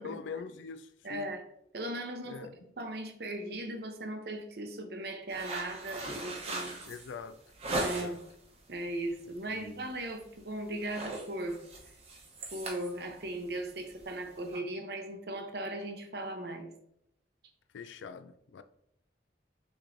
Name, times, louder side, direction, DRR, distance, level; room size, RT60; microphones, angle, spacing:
voice 1, 0.0-1.3 2.2-2.5 6.9-7.4 7.8-8.2 9.5-9.7 17.7-18.6, left 5 dB, 90° left, 0.4 m, -43 dB
voice 2, 1.0-1.4 1.7-2.5 2.8-6.8 7.8-8.2 8.7-11.6 12.5-16.7, right 1 dB, 60° right, 0.7 m, -38 dB
sound 1, 5.3-8.3 8.8-9.1 9.5-9.7 10.0-10.4 10.7-14.6, right 2 dB, 35° right, 0.8 m, -39 dB
6.2 x 3.0 x 2.6 m
head